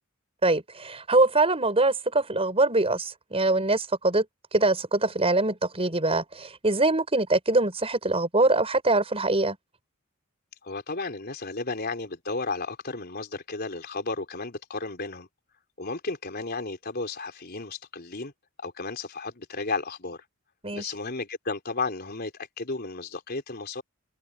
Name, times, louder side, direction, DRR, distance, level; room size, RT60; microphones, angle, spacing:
voice 1, 0.4-4.2 4.5-9.6 20.6-20.9, right 2 dB, 30° right, 5.9 m, -23 dB
voice 2, 10.6-15.3 15.8-18.3 18.6-20.2 20.7-23.8, left 3 dB, 50° left, 4.0 m, -33 dB
head